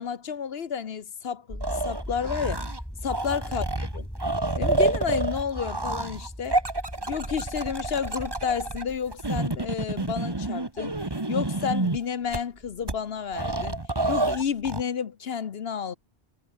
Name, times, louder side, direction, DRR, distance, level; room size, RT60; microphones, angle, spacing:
voice 1, 0.0-2.7 3.0-4.1 4.6-6.6 7.1-10.9 11.3-13.8 14.1-16.0, left 7 dB, 55° left, 1.1 m, -31 dB
sound 1, 1.5-9.6, equal, 5° left, 4.1 m, -38 dB
sound 2, 1.6-2.8 3.1-12.0 12.3-12.4 12.9-13.0 13.3-14.8, right 2 dB, 20° right, 1.6 m, -28 dB
omnidirectional pair, 1.3 m